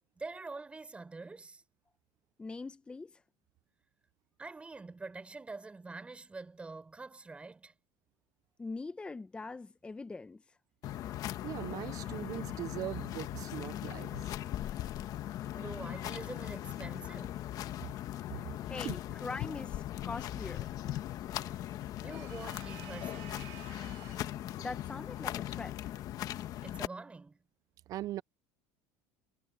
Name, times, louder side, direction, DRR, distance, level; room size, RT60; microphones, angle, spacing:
voice 1, 0.2-1.6 4.4-7.7 15.4-17.4 22.0-23.6 26.6-27.4, right 3 dB, 15° right, 5.1 m, -46 dB
voice 2, 2.4-3.2 8.6-10.6 18.7-20.7 24.6-25.9, left 3 dB, 15° left, 0.8 m, -42 dB
sound 1, 10.8-26.9, left 13 dB, 50° left, 1.3 m, -39 dB
voice 3, 11.4-14.2 18.8-19.0 27.9-28.2, right 14 dB, 45° right, 0.5 m, -40 dB
sound 2, 22.1-24.4, right 17 dB, 65° right, 1.8 m, -52 dB
cardioid pair, 130°, 8 cm